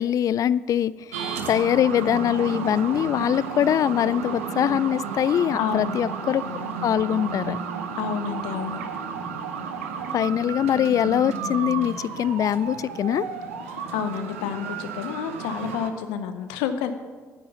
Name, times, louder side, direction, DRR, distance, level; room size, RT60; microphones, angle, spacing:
voice 1, 0.0-6.4 6.8-7.6 10.1-13.3, left 10 dB, 55° left, 19 dB, 0.4 m, -23 dB
sound 1, 1.1-15.9, right 5 dB, 85° right, 0.8 m, -32 dB
voice 2, 5.6-6.0 8.0-8.8 13.7-16.9, left 8 dB, 75° left, 10 dB, 0.8 m, -29 dB
9.3 x 9.1 x 6.9 m, 1.4 s
hypercardioid pair, 45°, 7 cm